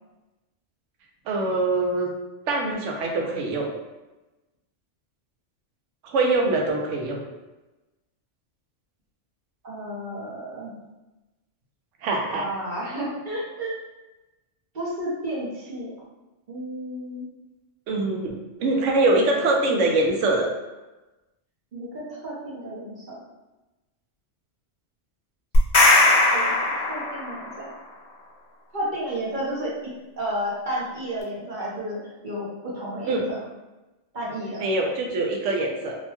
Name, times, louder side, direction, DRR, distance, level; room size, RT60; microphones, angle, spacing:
voice 1, 1.3-2.1 2.5-3.7 6.0-7.2 12.0-12.5 17.9-20.5 33.1-33.3 34.6-36.0, right 2 dB, 80° right, 0 dB, 0.9 m, -23 dB
voice 2, 9.6-10.7 12.3-13.7 14.7-15.9 16.5-17.2 19.6-19.8 21.7-23.2 26.3-26.5 26.9-27.6 28.7-29.7 30.2-32.0 32.2-33.4 34.1-34.7, right 1 dB, 45° right, -6 dB, 0.8 m, -32 dB
sound 1, 25.5-27.5, left 2 dB, 55° left, 0.4 m, -19 dB
2.7 x 2.1 x 2.8 m, 1.1 s
omnidirectional pair, 1.3 m